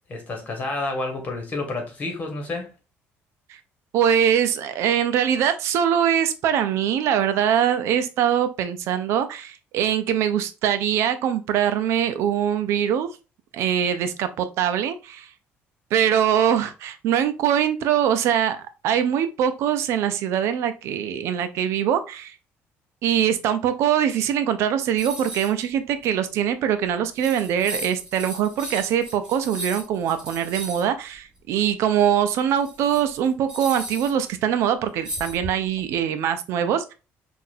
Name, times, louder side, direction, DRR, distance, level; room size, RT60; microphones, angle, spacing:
voice 1, 0.1-2.7, left 2 dB, 35° left, 1.6 m, -29 dB
voice 2, 3.9-13.1 13.5-15.3 15.9-22.3 23.0-36.9, right 9 dB, 70° right, 0.6 m, -23 dB
sound 1, 25.0-25.7 26.0-26.1 26.9-27.0 27.1-30.9 32.4-34.3 35.0-35.8, right 1 dB, 20° right, 2.3 m, -36 dB
5.8 x 2.6 x 2.6 m
cardioid pair, 145°, 5 cm